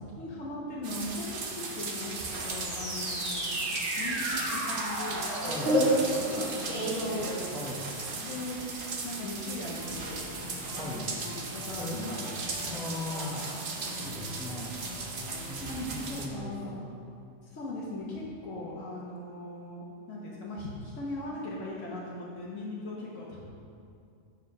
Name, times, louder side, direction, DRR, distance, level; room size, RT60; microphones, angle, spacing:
voice 1, 0.2-3.6 4.0-7.3 8.2-8.7 9.0-10.2 10.7-11.0 11.2-13.5 15.6-16.7 17.4-23.4, left 2 dB, 75° left, -5 dB, 1.3 m, -39 dB
sound 1, 0.8-16.3, right 3 dB, 50° right, 0.8 m, -37 dB
sound 2, 2.3-7.9, right 1 dB, 70° right, 2.3 m, -31 dB
voice 2, 5.5-5.8 7.5-7.9 10.8-11.1 11.7-12.0 12.6-13.4 14.0-14.9 15.5-17.1, left 1 dB, ahead, -6 dB, 0.5 m, -39 dB
sound 3, 9.8-15.7, left 1 dB, 35° right, 1.5 m, -45 dB
6.9 x 5.2 x 5.3 m, 2.5 s
omnidirectional pair, 1.3 m